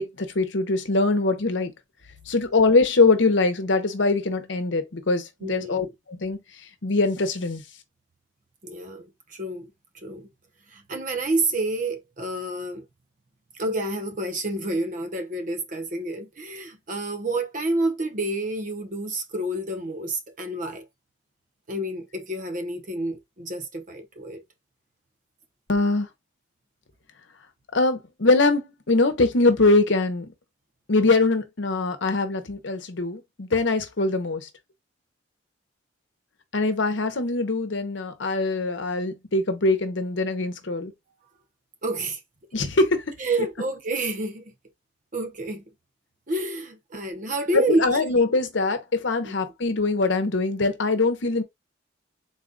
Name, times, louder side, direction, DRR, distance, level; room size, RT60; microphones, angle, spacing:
voice 1, 0.0-1.7 2.3-6.4 6.8-7.6 25.7-26.1 27.7-30.3 30.9-34.5 36.5-40.9 42.5-43.0 47.5-51.4, left 3 dB, 70° left, 0.8 m, -22 dB
voice 2, 5.4-5.9 8.6-9.7 10.0-10.3 10.7-12.8 13.6-20.8 21.7-24.4 41.8-42.2 43.2-44.5 45.1-45.6 46.3-48.2 49.2-49.3, right 2 dB, 40° right, 0.8 m, -29 dB
4.0 x 2.3 x 3.8 m
head